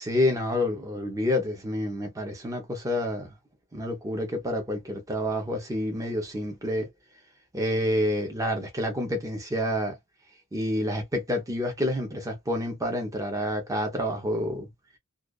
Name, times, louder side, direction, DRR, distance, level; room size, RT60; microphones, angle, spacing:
voice 1, 0.0-3.3 3.7-6.9 7.5-10.0 10.5-14.7, left 1 dB, 15° right, 0.7 m, -28 dB
2.4 x 2.3 x 2.2 m
head